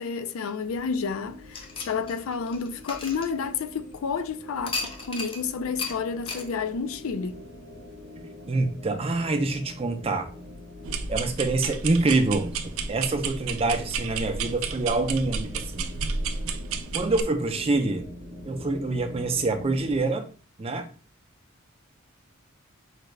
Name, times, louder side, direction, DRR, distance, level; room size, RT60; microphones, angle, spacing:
voice 1, 0.0-7.4, left 5 dB, 85° left, 0.4 m, -30 dB
sound 1, 0.6-20.0, left 1 dB, 55° left, 1.0 m, -44 dB
sound 2, 1.5-3.9 4.6-5.4 5.8-5.9 6.3-6.5, left 3 dB, 25° left, 0.6 m, -35 dB
voice 2, 8.5-10.3 11.1-15.9 16.9-18.1 18.4-20.3 20.6-20.9, right 3 dB, 30° right, 0.4 m, -26 dB
sound 3, 10.8-17.2, right 4 dB, 85° right, 0.4 m, -32 dB
4.8 x 2.2 x 3.2 m
head